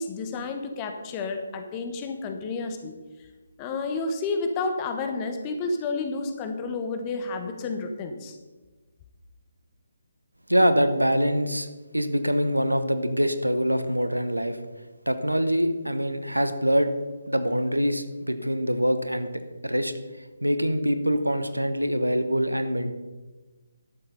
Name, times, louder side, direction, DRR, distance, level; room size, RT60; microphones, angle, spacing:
voice 1, 0.0-3.0 3.6-8.4, left 3 dB, 20° left, 6 dB, 1.0 m, -30 dB
voice 2, 10.5-11.7 11.9-14.6 15.1-16.9 17.3-19.3 19.6-19.9 20.4-22.9, equal, 85° right, 10 dB, 1.1 m, -24 dB
12.0 x 7.4 x 5.4 m, 1.2 s
figure-of-eight pair, 145°, 0 cm